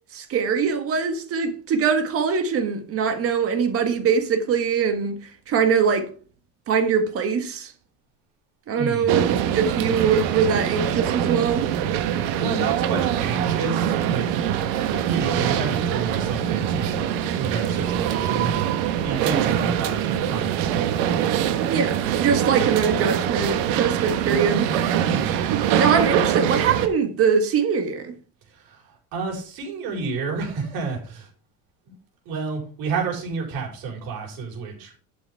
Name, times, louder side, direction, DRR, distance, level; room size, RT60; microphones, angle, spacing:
voice 1, 0.1-5.2 5.5-6.1 6.7-7.7 8.7-11.7 19.3-19.4 21.7-24.7 25.8-28.1, right 6 dB, 35° right, 1.6 m, -22 dB
voice 2, 8.8-9.4 12.1-14.4 14.9-21.2 25.1-25.6 28.5-31.3 32.2-35.0, right 4 dB, 65° right, 4.9 m, -31 dB
sound 1, 9.1-26.9, right 10 dB, 85° right, 1.5 m, -23 dB
12.0 x 7.1 x 3.5 m
cardioid pair, 160°, 38 cm